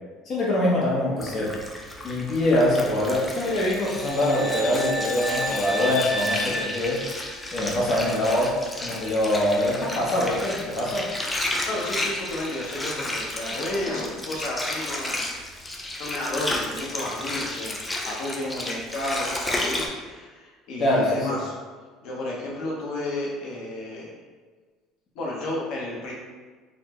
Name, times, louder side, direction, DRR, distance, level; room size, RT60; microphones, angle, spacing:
voice 1, 0.3-1.6 2.0-7.0 7.5-11.1 20.8-21.4, left 1 dB, 35° left, -5 dB, 0.7 m, -24 dB
Water, 1.2-19.9, left 1 dB, 10° left, 0.3 m, -32 dB
sound 1, 3.6-7.6, equal, 90° left, 1.3 m, -32 dB
voice 2, 11.6-15.3 15.5-17.8 18.0-21.6 22.0-24.2 25.1-26.1, left 1 dB, 60° left, -4 dB, 0.9 m, -32 dB
4.0 x 2.1 x 2.9 m, 1.4 s
cardioid pair, 155°, 0 cm